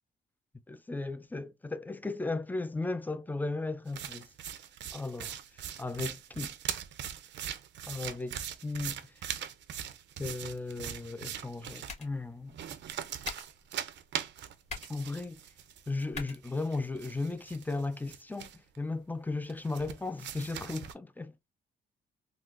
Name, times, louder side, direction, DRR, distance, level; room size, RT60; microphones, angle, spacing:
voice 1, 0.7-4.3 4.9-6.5 7.9-9.0 9.3-9.4 10.2-12.6 14.9-15.4 15.9-21.3, left 3 dB, 10° left, 0.4 m, -36 dB
sound 1, 3.9-11.9 12.5-16.0 16.3-18.8 19.5-20.9, right 10 dB, 65° right, 0.6 m, -41 dB
sound 2, 11.3-17.3, left 4 dB, 35° left, 1.4 m, -48 dB
3.7 x 2.3 x 2.4 m
cardioid pair, 90°, 20 cm